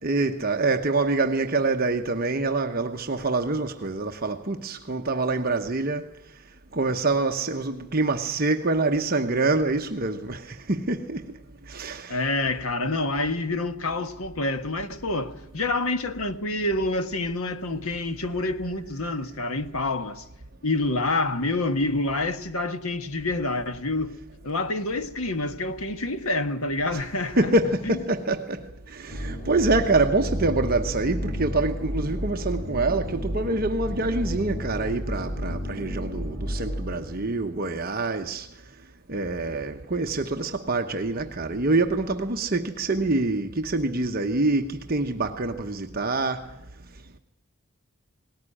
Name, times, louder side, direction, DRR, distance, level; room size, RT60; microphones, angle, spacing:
voice 1, 0.0-6.0 6.7-11.2 11.7-12.3 26.9-38.5 39.1-46.5, right 3 dB, 45° right, 1.0 m, -26 dB
voice 2, 12.1-20.2 20.6-24.2 24.4-27.5 27.8-28.0, left 2 dB, 80° left, 1.4 m, -27 dB
sound 1, 29.1-37.4, equal, 25° left, 3.6 m, -32 dB
19.0 x 18.5 x 9.9 m
head